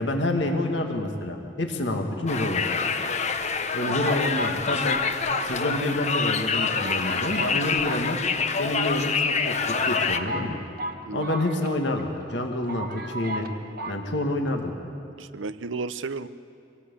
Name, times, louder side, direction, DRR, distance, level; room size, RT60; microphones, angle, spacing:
voice 1, 0.0-2.7 3.7-5.0 5.4-8.2 8.6-10.6 11.1-13.5 13.8-14.7, left 1 dB, 65° left, 3 dB, 2.0 m, -28 dB
Conversation, 2.3-10.2, left 5 dB, 35° left, 1.0 m, -26 dB
sound 1, 2.3-3.1 3.8-6.1 6.4-6.5 6.7-7.6 7.8-8.8 9.4-9.5 9.7-12.0 12.3-12.4 12.7-13.5 13.8-14.0, right 1 dB, 50° right, 1.4 m, -36 dB
voice 2, 15.2-16.3, right 4 dB, 85° right, 14 dB, 0.8 m, -34 dB
26.0 x 18.5 x 8.5 m, 2.5 s
head